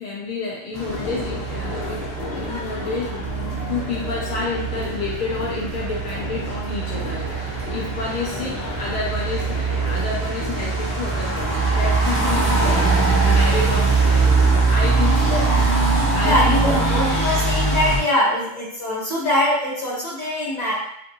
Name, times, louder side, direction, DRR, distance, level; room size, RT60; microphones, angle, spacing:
voice 1, 0.0-3.4 3.7-12.9 13.2-15.4 16.1-16.9, left 3 dB, 60° left, -4 dB, 0.4 m, -29 dB
sound 1, 0.7-18.0, right 3 dB, 20° right, 0.4 m, -22 dB
sound 2, 0.8-11.9, left 4 dB, 80° left, 0.9 m, -35 dB
voice 2, 12.1-12.9 15.1-15.6 16.2-20.7, left 1 dB, 35° left, -6 dB, 1.1 m, -23 dB
2.6 x 2.5 x 2.6 m, 0.75 s
omnidirectional pair, 1.3 m